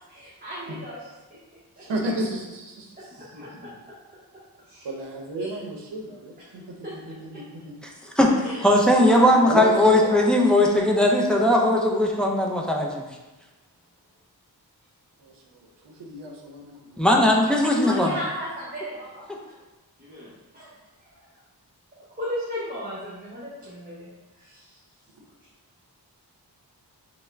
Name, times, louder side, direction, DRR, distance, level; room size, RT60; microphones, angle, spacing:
voice 1, 0.1-1.1 1.8-1.9 3.2-4.0 4.7-4.9 5.4-5.5 6.8-7.0 8.4-8.8 17.8-19.3 20.0-20.7 21.0-21.4 22.0-24.8, equal, 20° right, -9 dB, 0.7 m, -36 dB
voice 2, 1.8-3.3 4.8-6.8 7.1-7.8 9.4-10.3 15.2-17.1, right 1 dB, 85° right, 1 dB, 0.6 m, -33 dB
voice 3, 8.6-13.0 17.0-18.1, left 1 dB, ahead, -1 dB, 0.4 m, -19 dB
3.5 x 2.1 x 3.2 m, 1.1 s
wide cardioid pair, 75°, 41 cm